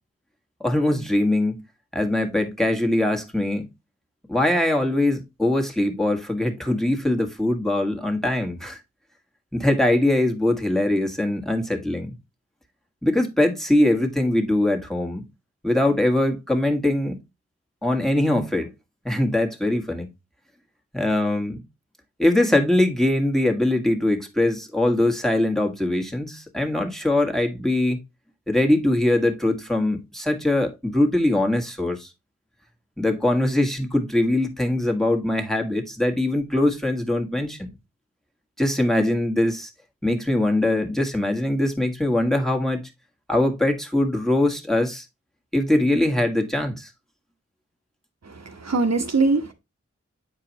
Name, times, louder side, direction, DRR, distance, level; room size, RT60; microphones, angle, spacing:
voice 1, 0.6-1.6 1.9-3.7 4.3-8.8 9.5-12.1 13.0-15.2 15.6-17.2 17.8-18.7 19.0-20.1 20.9-21.6 22.2-28.0 28.5-32.1 33.0-37.7 38.6-39.7 40.0-42.8 43.3-45.0 45.5-46.9, left 1 dB, ahead, 1.5 m, -22 dB
voice 2, 48.2-49.5, right 3 dB, 65° right, 1.1 m, -22 dB
8.5 x 4.8 x 2.9 m
wide cardioid pair, 50°, 29 cm